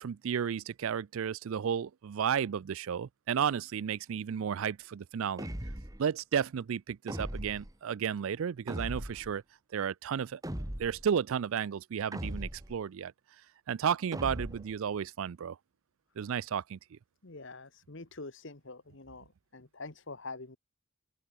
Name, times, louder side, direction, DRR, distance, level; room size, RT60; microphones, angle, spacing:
voice 1, 0.0-5.5 6.0-9.4 9.7-10.4 10.8-13.1 13.7-15.6 16.2-17.0, right 7 dB, 65° right, 0.4 m, -33 dB
sound 1, 5.4-6.1 7.1-7.7 8.7-9.3 10.4-11.1 12.1-12.8 14.1-14.8, right 1 dB, 15° right, 1.6 m, -39 dB
voice 2, 17.2-20.6, left 3 dB, 55° left, 1.4 m, -45 dB
open air
head